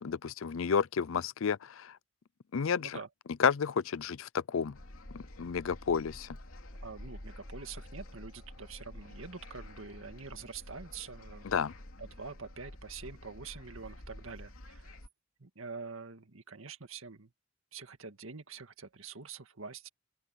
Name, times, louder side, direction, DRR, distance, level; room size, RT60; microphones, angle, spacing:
voice 1, 0.0-2.0 2.5-3.0 3.4-4.8 5.1-6.4 11.4-11.7, left 6 dB, 70° left, 0.5 m, -31 dB
sound 1, 4.7-15.1, left 1 dB, 85° left, 2.9 m, -49 dB
sound 2, 6.7-12.1, right 3 dB, 35° right, 5.0 m, -69 dB
voice 2, 6.8-11.5 12.0-15.0 15.4-17.3 17.7-19.9, right 5 dB, 75° right, 1.9 m, -46 dB
open air
head